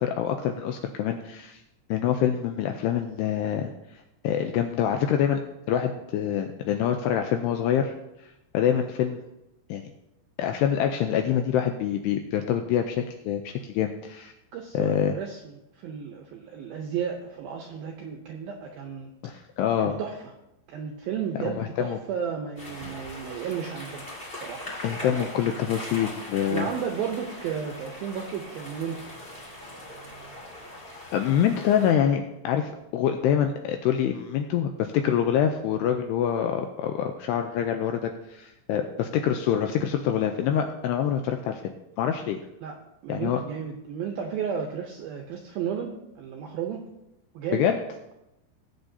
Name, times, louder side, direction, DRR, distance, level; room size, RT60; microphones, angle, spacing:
voice 1, 0.0-1.6 1.9-3.7 4.2-5.4 5.7-7.9 8.5-9.2 9.7-9.8 10.4-14.3 14.7-15.2 19.2-20.0 21.4-22.0 24.8-26.7 31.1-41.6 42.0-42.4 43.1-43.4 47.5-47.8, left 9 dB, 90° left, 5 dB, 2.4 m, -25 dB
voice 2, 14.5-19.1 19.8-20.2 20.7-24.1 24.4-24.7 25.0-25.3 26.5-29.1 42.6-42.8 43.0-46.8 47.3-47.7, right 7 dB, 80° right, 2 dB, 2.1 m, -33 dB
sound 1, 22.6-31.9, left 1 dB, 55° left, 0.6 m, -40 dB
19.5 x 8.1 x 2.8 m, 0.89 s
omnidirectional pair, 5.4 m